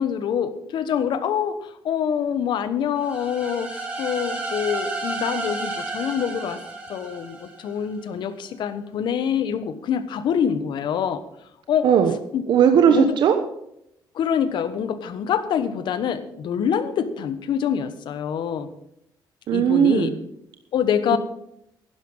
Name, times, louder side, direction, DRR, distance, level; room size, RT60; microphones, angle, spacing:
voice 1, 0.0-6.6 6.9-11.2 11.7-11.9 12.3-12.4 12.9-13.1 14.1-18.7 19.5-20.1 20.7-21.2, left 8 dB, 70° left, 12 dB, 1.2 m, -25 dB
sound 1, 3.0-7.8, right 3 dB, 15° right, 4.0 m, -32 dB
voice 2, 11.8-12.1 12.5-13.3 19.5-20.1, right 8 dB, 65° right, 6 dB, 1.1 m, -17 dB
11.5 x 11.0 x 5.6 m, 0.78 s
cardioid pair, 135°, 8 cm